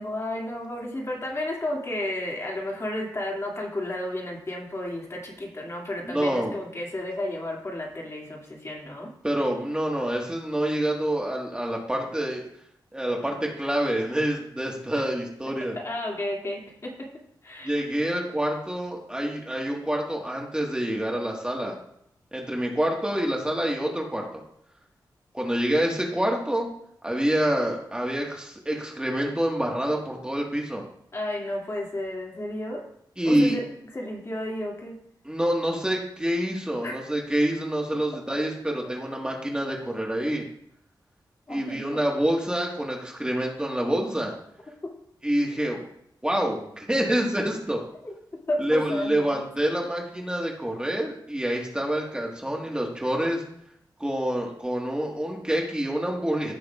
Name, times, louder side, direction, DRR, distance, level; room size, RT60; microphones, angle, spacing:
voice 1, 0.0-9.1 15.0-15.1 15.7-17.1 17.4-17.8 31.1-32.8 33.2-33.6 33.9-35.0 36.8-37.0 41.5-42.0 44.8-44.9 48.0-48.1 48.5-49.4, left 1 dB, 35° left, -2 dB, 2.4 m, -32 dB
voice 2, 6.1-6.5 9.2-12.5 12.9-15.8 17.6-21.7 22.3-24.3 25.3-26.7 27.0-30.8 33.2-33.6 35.2-40.4 41.5-44.3 45.2-45.8 46.2-47.8 48.6-53.4 54.0-56.5, right 1 dB, 10° right, -1 dB, 1.6 m, -27 dB
16.0 x 6.2 x 2.5 m, 0.72 s
wide cardioid pair, 85°, 8 cm